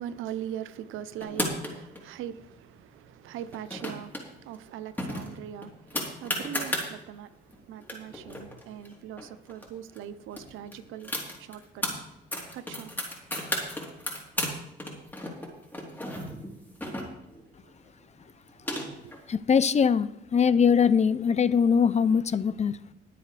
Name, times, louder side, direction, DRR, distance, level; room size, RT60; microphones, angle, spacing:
voice 1, 0.0-11.1 11.4-11.8 12.5-12.9 17.6-17.7 19.0-19.1, right 10 dB, 90° right, 0.8 m, -41 dB
sound 1, 1.2-2.0 3.5-4.2 4.5-4.6 5.0-6.9 7.5-7.6 7.8-9.6 10.0-10.1 10.3-11.9 12.3-14.5 14.8-17.4 18.2-19.2, left 1 dB, 10° left, 3.7 m, -33 dB
voice 2, 19.3-22.8, left 6 dB, 35° left, 0.6 m, -22 dB
21.5 x 7.8 x 3.4 m
cardioid pair, 90°, 20 cm